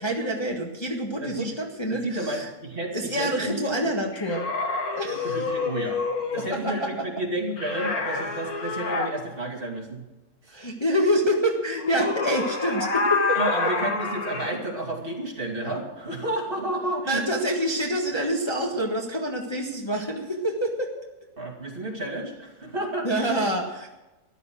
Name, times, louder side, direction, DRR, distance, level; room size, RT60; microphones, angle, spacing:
voice 1, 0.0-2.5 2.9-4.5 5.0-5.3 6.3-6.9 10.5-13.4 17.1-20.9 23.0-23.9, equal, 20° left, 0 dB, 1.4 m, -26 dB
voice 2, 1.9-3.9 5.1-6.0 6.3-10.0 10.4-10.5 13.3-17.2 21.4-23.3, right 1 dB, 35° right, -1 dB, 2.7 m, -31 dB
sound 1, 4.1-6.5 7.6-9.1 11.7-14.6, left 4 dB, 80° left, 2.0 m, -28 dB
14.0 x 11.0 x 6.3 m, 1.0 s
omnidirectional pair, 1.6 m